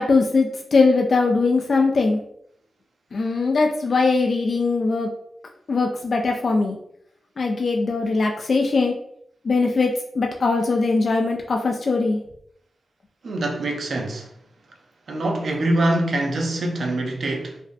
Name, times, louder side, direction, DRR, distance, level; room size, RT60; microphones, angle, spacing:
voice 1, 0.0-2.2 3.1-5.1 5.7-6.8 7.4-8.9 9.4-9.9 10.2-12.2, left 3 dB, 60° left, 0.3 m, -20 dB
voice 2, 13.2-14.3 15.1-17.6, right 1 dB, 70° right, 0.5 m, -24 dB
2.5 x 2.0 x 2.5 m
supercardioid pair, 40°, 0 cm